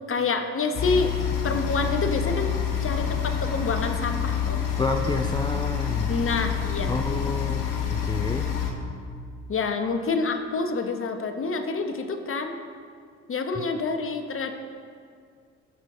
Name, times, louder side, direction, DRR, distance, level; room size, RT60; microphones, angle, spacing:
voice 1, 0.1-1.1 1.4-2.6 2.8-4.6 6.1-7.0 9.5-12.6 13.3-14.5, left 4 dB, 40° left, 6 dB, 1.2 m, -27 dB
sound 1, 0.7-8.7, left 8 dB, 60° left, 1.3 m, -27 dB
voice 2, 4.8-6.1 6.9-7.6 7.9-8.5 13.6-13.7, left 3 dB, 10° left, 4 dB, 0.5 m, -29 dB
16.0 x 6.4 x 2.7 m, 2.2 s
hypercardioid pair, 50°, 35 cm